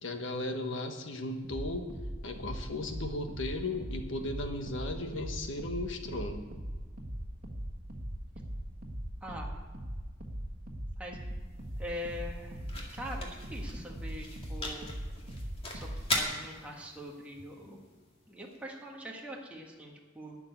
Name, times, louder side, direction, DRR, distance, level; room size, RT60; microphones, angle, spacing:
voice 1, 0.0-1.9 2.2-6.5, left 2 dB, 65° left, 5 dB, 1.4 m, -36 dB
sound 1, 1.4-16.2, equal, 45° right, 1.6 m, -40 dB
voice 2, 9.2-9.5 11.0-11.2 11.8-12.6 12.9-14.9 15.7-17.8 18.3-20.4, equal, 5° right, -2 dB, 1.5 m, -43 dB
sound 2, 11.1-19.2, left 2 dB, 30° left, 2.2 m, -40 dB
12.0 x 6.9 x 9.6 m, 1.4 s
head